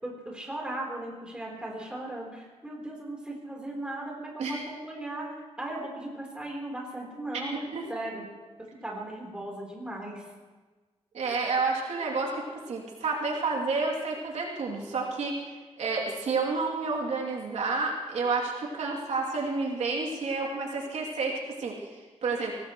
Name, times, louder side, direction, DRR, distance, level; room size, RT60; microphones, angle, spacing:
voice 1, 0.0-5.3 5.6-7.5 7.9-8.2 8.8-10.2, right 1 dB, 10° right, -3 dB, 4.1 m, -37 dB
voice 2, 11.1-22.5, right 4 dB, 80° right, -2 dB, 3.1 m, -30 dB
24.0 x 18.5 x 3.2 m, 1.3 s
wide cardioid pair, 170°, 11 cm